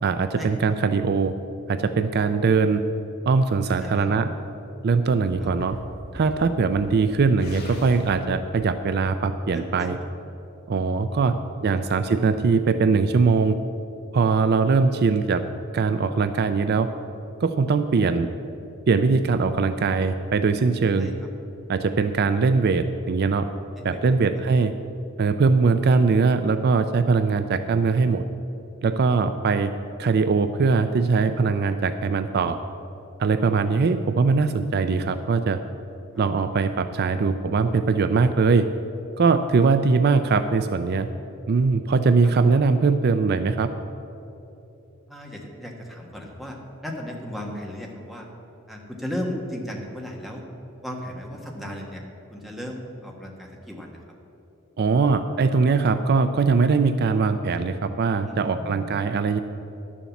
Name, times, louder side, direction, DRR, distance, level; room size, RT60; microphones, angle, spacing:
voice 1, 0.0-1.4 1.7-2.8 3.3-4.3 4.8-5.8 6.1-10.0 10.7-11.4 11.6-13.6 14.1-15.4 15.7-16.9 17.4-18.3 18.9-21.1 21.7-23.5 23.8-24.7 25.2-28.2 28.8-29.7 30.0-32.6 33.2-35.6 36.2-38.7 39.2-41.1 41.5-43.7 54.8-59.4, right 4 dB, 50° right, 10 dB, 0.4 m, -21 dB
voice 2, 3.7-4.2 9.5-9.9 11.1-11.4 11.7-11.8 21.0-21.1 23.8-24.4 36.5-36.6 45.1-46.6 46.8-48.3 48.7-50.4 50.8-52.0 52.3-54.0 58.2-59.0, equal, ahead, -1 dB, 1.4 m, -36 dB
sound 1, 5.3-9.5, equal, 50° left, 1.9 m, -43 dB
11.5 x 7.1 x 7.1 m, 2.9 s
head